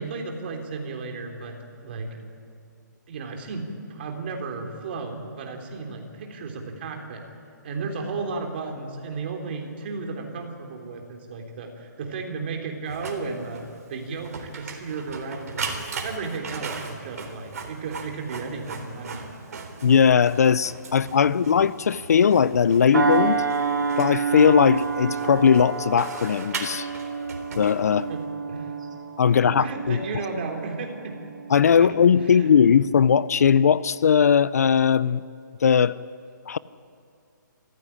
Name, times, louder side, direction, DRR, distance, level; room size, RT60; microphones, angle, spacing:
voice 1, 0.0-1.6 1.8-2.2 3.1-7.2 7.6-13.6 13.9-19.7 21.3-21.4 28.1-28.2 28.5-28.7 29.3-31.1 31.7-32.5, right 4 dB, 30° right, 3.4 m, -34 dB
Printer, 12.9-28.2, right 4 dB, 50° right, 3.8 m, -38 dB
voice 2, 19.8-23.4 24.0-26.9 27.6-28.1 29.2-30.0 31.5-35.2 35.6-36.0 36.5-36.6, left 7 dB, 50° left, 0.5 m, -19 dB
sound 1, 22.9-31.8 32.3-32.5, right 5 dB, 75° right, 4.4 m, -29 dB
26.5 x 15.0 x 10.0 m
hypercardioid pair, 170°, 11 cm